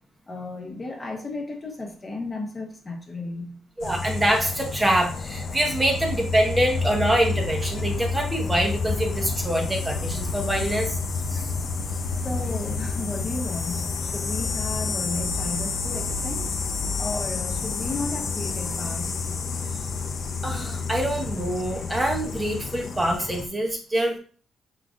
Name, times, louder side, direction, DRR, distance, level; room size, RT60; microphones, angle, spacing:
voice 1, 0.3-3.6 12.1-16.6 17.0-19.1, left 2 dB, 30° left, 1 dB, 1.1 m, -34 dB
sound 1, 3.8-23.5, left 4 dB, 50° left, 0.6 m, -29 dB
voice 2, 3.8-11.0 11.3-11.5 20.4-24.2, right 1 dB, 20° right, 2 dB, 0.9 m, -25 dB
4.9 x 3.8 x 2.5 m, 0.41 s
cardioid pair, 90°, 0 cm